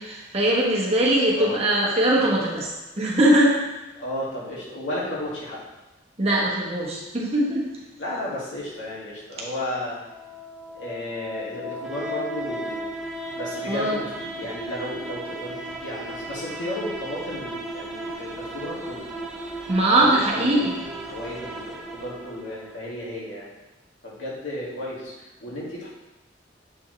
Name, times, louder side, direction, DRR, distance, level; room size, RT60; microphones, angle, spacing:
voice 1, 0.0-2.7 3.0-3.6 6.2-7.6 13.7-14.0 19.7-20.8, right 1 dB, 30° right, -4 dB, 1.2 m, -21 dB
voice 2, 3.9-5.6 8.0-10.0 10.7-13.0 13.3-19.0 20.0-23.5 24.0-25.9, left 1 dB, 75° left, -7 dB, 2.1 m, -33 dB
sound 1, 9.9-22.9, right 1 dB, 5° right, 0.5 m, -35 dB
7.4 x 4.5 x 3.2 m, 1.1 s
head